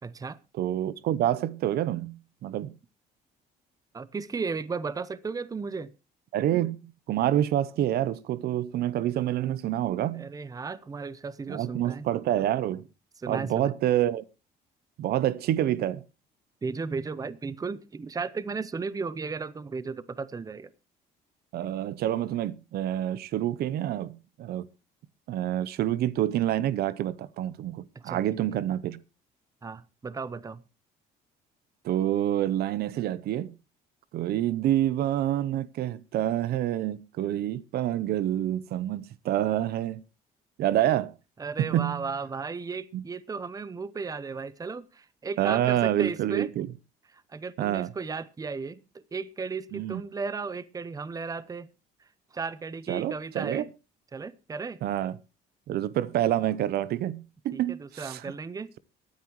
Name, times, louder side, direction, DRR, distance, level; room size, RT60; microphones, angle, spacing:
voice 1, 0.0-0.4 3.9-5.9 10.1-12.1 13.2-13.7 16.6-20.7 27.9-28.4 29.6-30.6 41.4-46.5 47.1-51.7 52.3-53.7 54.1-54.8 57.5-58.7, right 4 dB, 20° right, 0.8 m, -35 dB
voice 2, 0.6-2.7 6.3-10.3 11.5-12.9 13.3-14.2 15.0-16.0 21.5-24.7 25.3-29.0 31.8-33.5 34.1-40.0 40.6-41.1 41.6-42.1 42.9-43.0 45.4-46.7 47.6-47.9 49.7-50.0 52.9-53.6 54.8-55.2 55.7-58.3, right 12 dB, 70° right, 0.7 m, -27 dB
23.5 x 9.5 x 3.1 m
cardioid pair, 110°, 17 cm